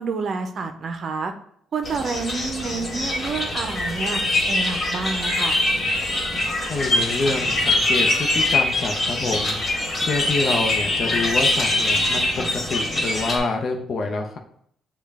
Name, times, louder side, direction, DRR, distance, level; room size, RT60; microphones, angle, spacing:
voice 1, 0.0-1.3 1.7-4.2 4.5-5.6, right 4 dB, 55° right, 7 dB, 0.5 m, -28 dB
sound 1, 1.8-13.4, left 2 dB, 40° left, 1.5 m, -23 dB
voice 2, 6.7-9.6 10.0-14.4, left 3 dB, 55° left, 3 dB, 0.6 m, -27 dB
6.5 x 2.2 x 3.5 m, 0.67 s
cardioid pair, 90°, 0 cm